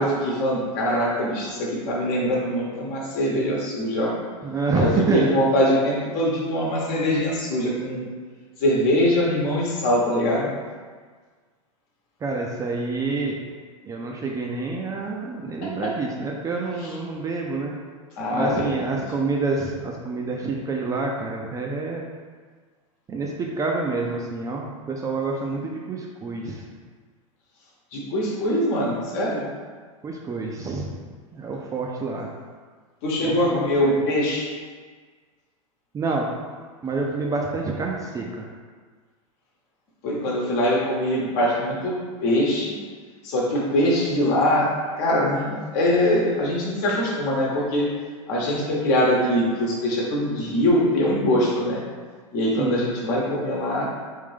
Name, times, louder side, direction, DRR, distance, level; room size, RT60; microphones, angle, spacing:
voice 1, 0.0-4.2 4.8-8.1 8.6-10.5 15.6-15.9 18.2-18.9 27.9-29.4 33.0-34.5 40.0-41.9 42.2-42.7 43.2-44.7 45.0-47.8 48.3-51.8 52.3-53.9, left 1 dB, 50° left, -3 dB, 1.1 m, -23 dB
voice 2, 4.4-5.3 12.2-13.4 13.8-17.7 18.3-22.1 23.1-26.6 30.0-30.9 31.3-32.3 33.2-33.9 35.9-36.3 36.8-38.5 52.6-52.8, right 3 dB, 20° right, -1 dB, 0.4 m, -27 dB
3.6 x 2.6 x 3.4 m, 1.5 s
hypercardioid pair, 100°, 18 cm